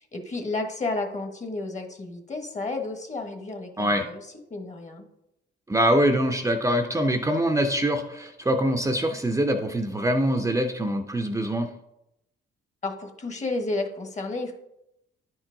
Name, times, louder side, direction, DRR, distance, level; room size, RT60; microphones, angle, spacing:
voice 1, 0.1-4.2 4.5-5.1 12.8-14.5, left 2 dB, 35° left, 5 dB, 1.3 m, -31 dB
voice 2, 3.8-4.1 5.7-11.7, equal, 15° right, 5 dB, 0.6 m, -24 dB
9.8 x 4.6 x 3.8 m, 0.82 s
cardioid pair, 90°, 20 cm